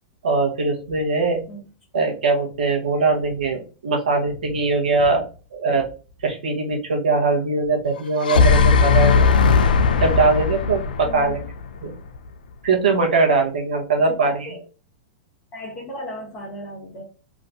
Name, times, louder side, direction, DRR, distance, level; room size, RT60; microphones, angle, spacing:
voice 1, 0.2-1.4 1.9-5.3 5.5-5.9 6.2-9.3 10.0-11.4 11.8-11.9 12.6-14.5, right 3 dB, 85° right, 0 dB, 1.2 m, -21 dB
sound 1, 8.0-12.2, left 5 dB, 90° left, 0.4 m, -18 dB
voice 2, 11.0-11.4 14.1-14.6 15.5-17.0, equal, 35° left, -4 dB, 1.4 m, -36 dB
3.7 x 2.5 x 3.5 m, 0.35 s
hypercardioid pair, 120°, 5 cm